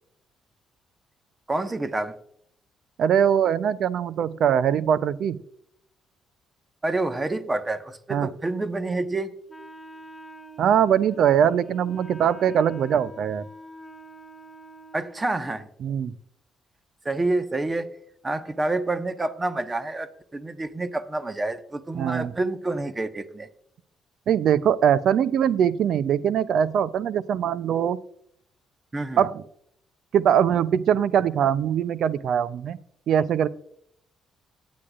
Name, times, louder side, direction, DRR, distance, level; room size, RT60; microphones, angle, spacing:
voice 1, 1.5-2.2 6.8-9.3 14.9-15.7 17.0-17.9 18.2-23.5 28.9-29.3, right 2 dB, 25° right, 9 dB, 1.3 m, -28 dB
voice 2, 3.0-5.4 8.1-8.3 10.6-13.4 15.8-16.2 21.9-22.3 24.3-28.0 29.2-29.4 30.1-32.8 33.1-33.5, right 9 dB, 65° right, 17 dB, 0.6 m, -22 dB
Wind instrument woodwind instrument, 9.5-15.3, right 1 dB, 10° left, 1.0 m, -45 dB
17.5 x 10.5 x 2.5 m, 0.71 s
hypercardioid pair, 50°, 0 cm